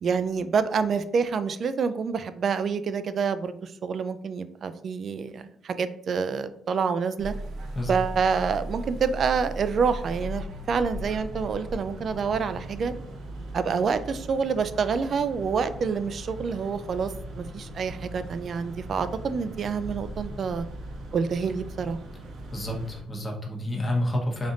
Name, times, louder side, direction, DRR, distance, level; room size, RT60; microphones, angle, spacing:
voice 1, 0.0-7.3 7.9-12.9 13.5-20.7 21.1-22.0, right 5 dB, 55° right, 11 dB, 0.3 m, -27 dB
sound 1, 7.2-23.0, right 1 dB, 70° right, 0.7 m, -38 dB
voice 2, 22.5-24.5, left 1 dB, 25° left, 0 dB, 0.9 m, -29 dB
3.4 x 2.5 x 3.9 m, 0.68 s
cardioid pair, 90°, 0 cm